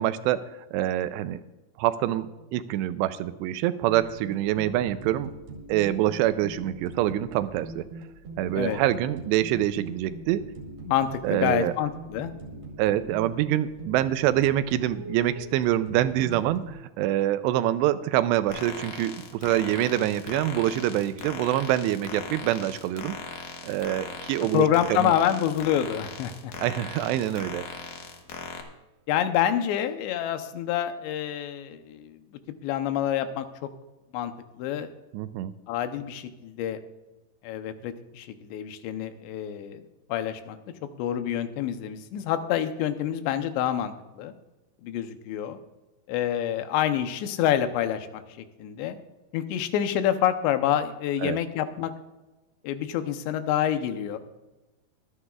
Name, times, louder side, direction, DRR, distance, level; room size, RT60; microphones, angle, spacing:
voice 1, 0.0-1.4 1.8-5.3 5.7-7.9 8.4-10.4 11.2-11.7 12.8-23.2 23.6-25.1 26.6-27.6 35.1-35.5 51.2-51.4, right 13 dB, 85° right, 13 dB, 2.7 m, -25 dB
sound 1, 3.9-16.7, right 2 dB, 55° right, 3.6 m, -42 dB
voice 2, 10.9-12.3 24.4-26.5 29.1-33.7 34.1-34.3 34.6-34.9 35.7-36.8 37.4-39.8 40.1-40.6 40.8-44.3 44.8-45.6 46.1-49.0 49.3-51.9 52.6-54.2, left 10 dB, 90° left, 9 dB, 3.1 m, -27 dB
sound 2, 18.5-28.6, left 6 dB, 65° left, 2.1 m, -39 dB
24.0 x 9.8 x 2.4 m, 1.1 s
omnidirectional pair, 4.9 m